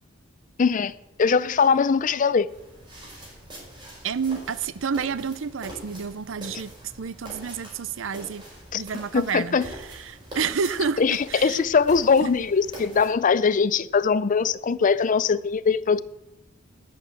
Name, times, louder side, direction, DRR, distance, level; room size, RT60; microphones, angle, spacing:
voice 1, 0.6-0.9 1.2-2.5 8.7-8.8 9.1-9.7 11.0-16.0, left 5 dB, 40° left, 0.5 m, -21 dB
sound 1, 2.5-13.1, right 1 dB, 25° right, 4.8 m, -43 dB
voice 2, 4.0-6.7 7.0-8.4 8.7-11.6 12.2-12.3, right 6 dB, 75° right, 0.6 m, -30 dB
11.0 x 6.7 x 8.1 m
head